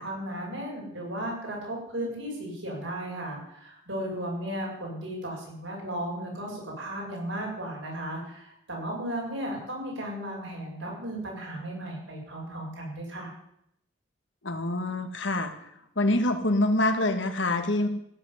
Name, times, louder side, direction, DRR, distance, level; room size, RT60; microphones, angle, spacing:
voice 1, 0.0-13.3, right 1 dB, 85° right, -2 dB, 7.8 m, -35 dB
voice 2, 14.4-15.5 16.0-17.9, left 1 dB, 80° left, 7 dB, 1.9 m, -25 dB
15.5 x 8.2 x 9.7 m, 0.76 s
head